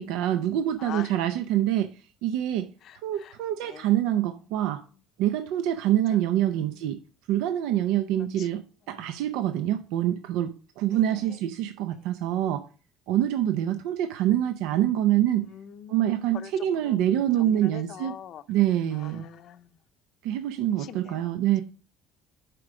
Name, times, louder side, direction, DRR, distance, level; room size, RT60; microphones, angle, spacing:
voice 1, 0.0-1.9 2.2-2.7 3.0-4.8 5.2-7.0 7.3-12.7 13.1-15.5 15.9-18.1 18.5-19.3 20.2-21.6, right 12 dB, 80° right, 0.5 m, -25 dB
voice 2, 0.8-1.2 2.8-3.3 3.6-3.9 6.5-6.8 8.4-8.6 8.9-9.2 10.9-11.4 11.9-12.1 15.5-18.4 18.9-19.8 20.8-21.3, left 9 dB, 45° left, 0.6 m, -44 dB
7.7 x 4.9 x 4.9 m
cardioid pair, 160°, 0 cm